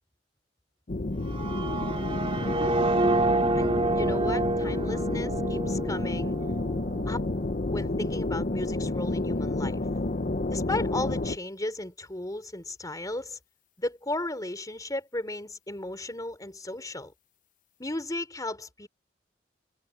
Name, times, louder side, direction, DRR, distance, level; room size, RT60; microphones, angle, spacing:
sound 1, 0.9-11.4, left 2 dB, 45° left, 0.8 m, -30 dB
sound 2, 1.2-7.2, right 2 dB, 30° right, 2.3 m, -28 dB
voice 1, 2.4-2.8 3.6-6.4 7.1-7.2 7.7-9.8 10.5-13.4 13.8-17.1 17.8-18.9, left 2 dB, 20° left, 3.6 m, -35 dB
head